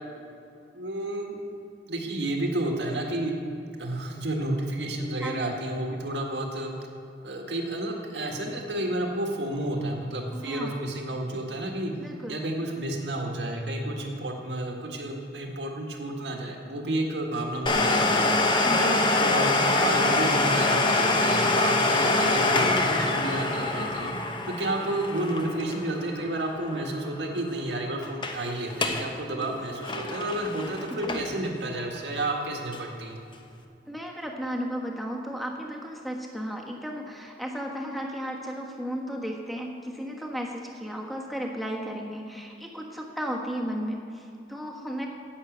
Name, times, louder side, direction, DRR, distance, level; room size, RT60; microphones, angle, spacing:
voice 1, 0.7-1.4 1.9-3.3 3.8-6.7 7.2-11.9 12.3-18.3 18.8-19.6 19.8-24.1 24.5-33.2, right 1 dB, 80° right, 1 dB, 1.8 m, -31 dB
voice 2, 10.3-10.8 12.0-12.4 18.6-18.8 29.3-29.4 30.9-31.2 33.8-45.1, equal, ahead, 0 dB, 1.3 m, -34 dB
Domestic sounds home sounds, 17.7-27.1 27.3-27.4 28.0-28.4 28.7-29.1 29.4-31.5 32.0-32.1 32.7-32.8, left 2 dB, 25° left, 0.9 m, -25 dB
11.0 x 8.4 x 8.0 m, 2.6 s
head